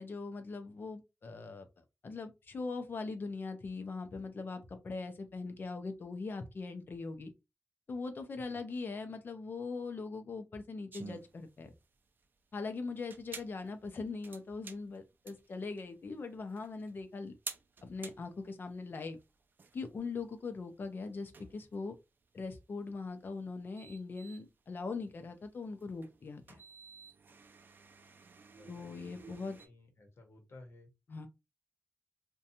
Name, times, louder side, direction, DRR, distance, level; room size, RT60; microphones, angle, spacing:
voice 1, 0.0-1.7 2.0-7.3 7.9-11.7 12.5-17.3 17.8-19.2 19.7-21.9 22.3-26.6 28.7-29.6 31.1-31.3, left 4 dB, 50° left, 0.5 m, -41 dB
sound 1, 10.9-29.7, right 4 dB, 45° right, 0.3 m, -53 dB
voice 2, 28.5-30.9, left 2 dB, 70° left, 0.9 m, -57 dB
2.6 x 2.2 x 2.7 m
wide cardioid pair, 155°, 4 cm